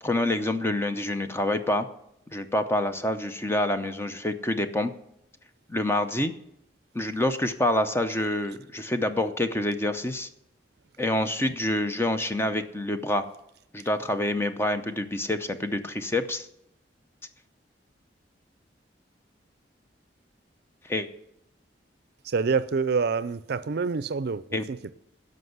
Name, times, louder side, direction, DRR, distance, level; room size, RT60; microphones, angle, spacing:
voice 1, 0.0-1.9 2.3-4.9 5.7-6.3 6.9-10.3 11.0-13.3 13.7-16.5 20.9-21.1 24.5-24.6, left 1 dB, 15° left, 8 dB, 0.7 m, -27 dB
voice 2, 22.2-24.9, right 5 dB, 60° right, 14 dB, 0.5 m, -27 dB
13.5 x 5.3 x 8.0 m, 0.78 s
head